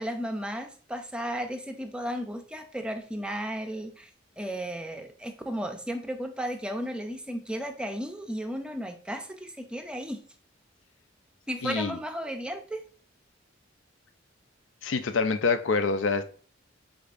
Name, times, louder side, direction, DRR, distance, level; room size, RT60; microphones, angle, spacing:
voice 1, 0.0-4.1 4.4-10.2 11.5-12.9, equal, 5° right, 0.5 m, -34 dB
voice 2, 11.6-12.0 14.8-16.2, left 4 dB, 80° left, 0.5 m, -26 dB
5.1 x 4.0 x 2.5 m
head